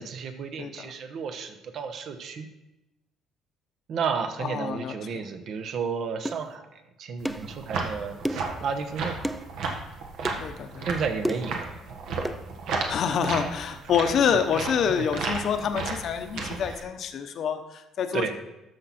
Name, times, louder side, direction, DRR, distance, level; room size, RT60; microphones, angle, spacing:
voice 1, 0.0-2.5 3.9-9.2 10.9-11.8 14.3-14.4 16.7-16.8 18.1-18.3, right 5 dB, 55° right, 8 dB, 1.1 m, -32 dB
voice 2, 0.6-0.9 4.4-5.2 10.4-10.9 12.9-18.3, left 7 dB, 55° left, 7 dB, 0.9 m, -27 dB
sound 1, 6.2-6.4 7.2-7.5 8.2-8.5 9.2-9.4 10.2-10.4 11.2-11.6 12.2-12.4 13.2-13.4, equal, 5° right, 0.5 m, -31 dB
sound 2, 7.2-16.8, right 4 dB, 75° right, 1.6 m, -34 dB
13.0 x 6.0 x 4.3 m, 0.95 s
cardioid pair, 115°, 0 cm